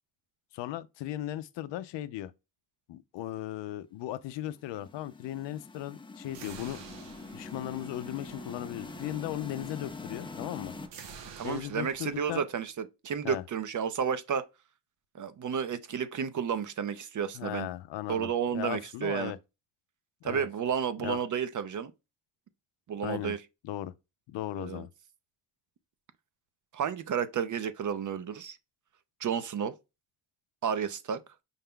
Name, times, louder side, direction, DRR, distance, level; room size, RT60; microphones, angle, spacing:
voice 1, 0.5-2.3 2.9-6.8 7.3-10.7 11.4-12.4 13.2-13.4 17.3-19.4 20.2-20.5 21.0-21.2 23.0-23.4 23.6-23.9 24.3-24.9, left 13 dB, 85° left, 0.5 m, -37 dB
sound 1, 4.5-10.9, left 4 dB, 10° left, 0.5 m, -44 dB
sound 2, 6.3-12.3, right 6 dB, 90° right, 0.9 m, -49 dB
voice 2, 11.4-14.4 15.2-17.7 18.1-19.3 20.2-21.9 22.9-23.4 24.5-24.8 26.7-28.6 29.2-29.7 30.6-31.2, right 7 dB, 45° right, 0.7 m, -32 dB
5.5 x 2.2 x 3.6 m
cardioid pair, 80°, 42 cm